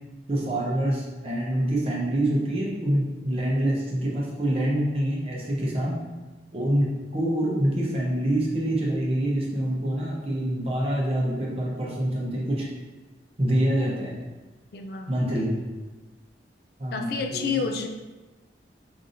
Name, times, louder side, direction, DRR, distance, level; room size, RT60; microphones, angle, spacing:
voice 1, 0.3-5.9 6.5-12.7 13.4-14.1 15.1-15.5 16.8-17.6, right 1 dB, 35° right, -4 dB, 0.8 m, -26 dB
voice 2, 14.7-15.1 16.9-17.9, left 5 dB, 55° left, 4 dB, 0.3 m, -29 dB
5.0 x 2.7 x 2.6 m, 1.2 s
head